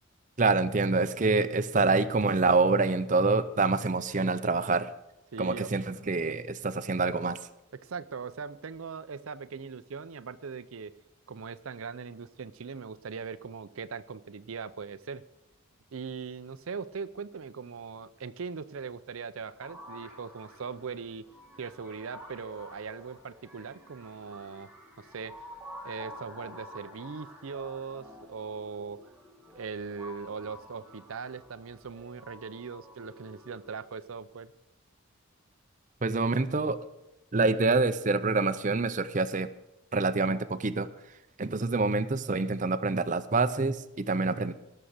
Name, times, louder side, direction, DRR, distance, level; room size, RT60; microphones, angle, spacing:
voice 1, 0.4-4.9 5.4-7.4 36.0-36.8 37.3-39.5 39.9-40.9 41.4-44.5, right 3 dB, 35° right, 11 dB, 0.6 m, -26 dB
voice 2, 5.3-5.7 7.7-10.9 11.3-15.2 15.9-21.2 21.6-24.7 25.0-25.3 25.8-29.0 29.5-34.5, right 5 dB, 80° right, 13 dB, 0.6 m, -40 dB
sound 1, 19.6-33.7, left 1 dB, ahead, 2.1 m, -49 dB
17.0 x 6.7 x 6.6 m, 0.91 s
head